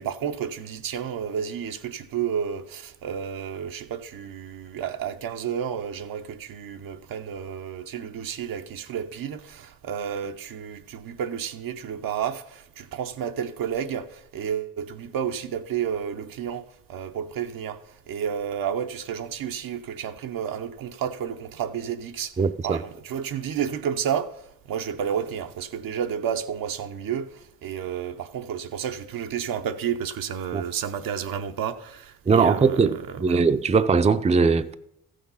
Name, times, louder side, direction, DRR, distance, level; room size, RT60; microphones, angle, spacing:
voice 1, 0.0-16.6 16.9-17.8 18.1-22.3 22.6-24.4 24.7-33.4, right 8 dB, 75° right, 0.8 m, -31 dB
voice 2, 22.4-22.8 30.5-30.6 32.3-34.7, right 5 dB, 20° right, 0.5 m, -20 dB
14.0 x 6.6 x 5.5 m
cardioid pair, 65°, 34 cm